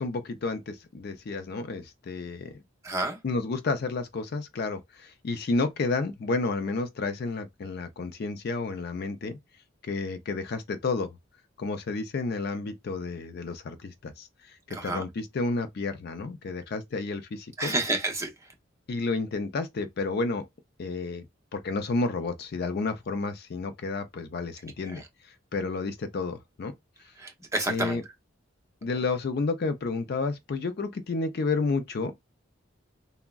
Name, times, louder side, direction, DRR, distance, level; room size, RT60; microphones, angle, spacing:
voice 1, 0.0-2.6 3.2-9.4 9.8-11.1 11.6-17.7 18.9-20.5 20.8-21.3 21.5-26.7 27.7-28.0 28.8-32.2, left 3 dB, 50° left, 0.4 m, -31 dB
voice 2, 2.8-3.2 14.7-15.0 17.6-18.3 24.9-25.0 27.2-28.0, right 2 dB, 15° right, 0.6 m, -29 dB
3.5 x 2.0 x 2.2 m
head